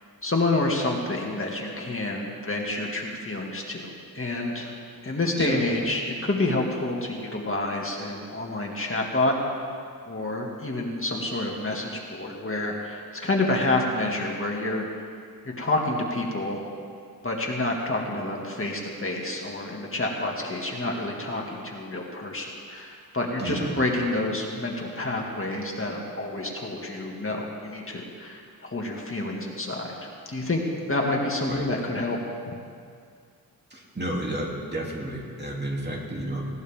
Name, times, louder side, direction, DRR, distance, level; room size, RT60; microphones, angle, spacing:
voice 1, 0.2-4.7 5.0-9.3 10.1-14.9 15.6-16.6 17.2-30.6 30.9-32.2 32.5-32.6, left 2 dB, 35° left, -1 dB, 2.0 m, -28 dB
voice 2, 33.7-36.5, right 1 dB, 30° right, -2 dB, 2.8 m, -31 dB
20.0 x 17.5 x 3.6 m, 2.2 s
wide cardioid pair, 100°, 36 cm